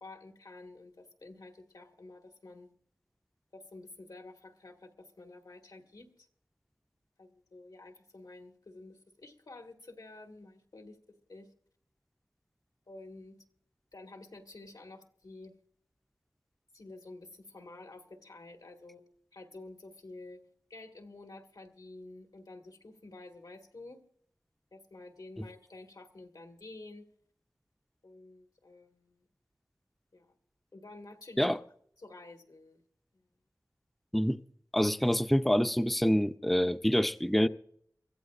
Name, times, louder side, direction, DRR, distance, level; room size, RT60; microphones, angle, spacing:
voice 1, 0.0-2.7 3.5-6.3 7.2-11.0 11.3-11.5 12.9-13.4 13.9-15.6 16.7-19.0 19.3-20.4 20.7-24.0 24.7-27.1 28.0-29.2 30.1-30.3 30.7-31.6 32.0-32.8 33.1-33.2, left 2 dB, 85° left, 1.7 m, -50 dB
voice 2, 34.7-37.5, equal, ahead, 0.4 m, -26 dB
23.5 x 15.0 x 2.4 m
wide cardioid pair, 60°, 7 cm